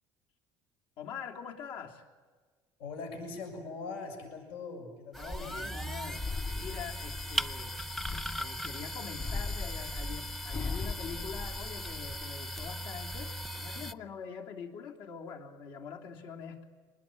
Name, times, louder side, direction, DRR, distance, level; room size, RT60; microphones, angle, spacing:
voice 1, 1.0-2.1 5.2-6.2 6.5-7.8 8.1-16.7, left 6 dB, 65° left, 2 dB, 3.3 m, -44 dB
voice 2, 2.8-5.6, left 4 dB, 85° left, 4 dB, 6.7 m, -41 dB
sound 1, 5.1-13.9, equal, 5° left, 0.8 m, -38 dB
sound 2, 6.1-8.6 9.2-12.2 12.6-13.2, left 4 dB, 35° left, 2.1 m, -39 dB
25.5 x 20.5 x 9.2 m, 1.4 s
cardioid pair, 125°, 10 cm